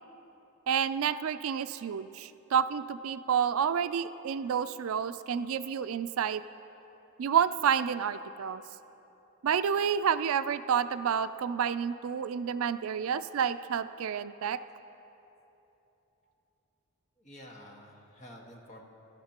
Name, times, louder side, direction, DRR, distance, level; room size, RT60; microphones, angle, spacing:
voice 1, 0.7-6.4 7.2-8.6 9.4-14.6, right 7 dB, 65° right, 12 dB, 0.4 m, -29 dB
voice 2, 17.2-18.8, equal, 35° left, -1 dB, 1.5 m, -50 dB
21.5 x 12.0 x 2.9 m, 3.0 s
head